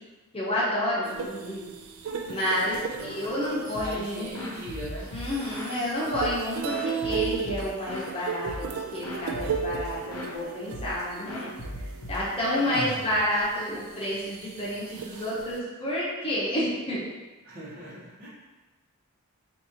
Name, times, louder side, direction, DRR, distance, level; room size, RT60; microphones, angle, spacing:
voice 1, 0.3-1.7 2.3-4.3 5.1-8.7 8.9-11.5 11.8-17.0, left 1 dB, 25° left, -8 dB, 0.9 m, -30 dB
sound 1, 1.0-12.4 12.9-13.0 13.4-15.6, right 6 dB, 65° right, 0.4 m, -36 dB
voice 2, 2.9-3.4 3.8-5.1 12.6-13.1 17.4-18.3, right 1 dB, 40° right, -8 dB, 1.2 m, -39 dB
sound 2, 3.7-4.1 4.3-5.8 6.1-8.1 8.5-8.8 9.0-10.4 10.7-11.0 11.3-13.4, equal, 80° left, 0.7 m, -38 dB
4.2 x 2.6 x 2.9 m, 1.2 s
head